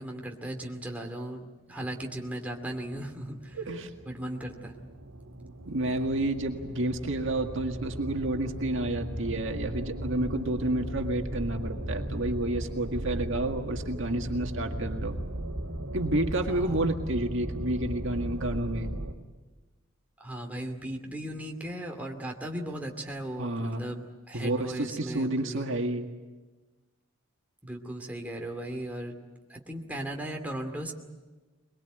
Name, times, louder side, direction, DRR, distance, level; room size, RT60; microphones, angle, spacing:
voice 1, 0.0-3.7 4.0-4.7 16.4-16.9 20.2-25.7 27.6-29.1 29.5-30.9, right 1 dB, 10° right, 1 dB, 2.5 m, -37 dB
sound 1, 2.5-19.1, right 1 dB, 85° right, 2.1 m, -37 dB
voice 2, 3.5-3.9 5.7-15.2 15.9-18.9 23.4-23.8 24.3-26.1, right 1 dB, 65° right, 4 dB, 1.9 m, -30 dB
22.5 x 22.5 x 9.2 m, 1.2 s
head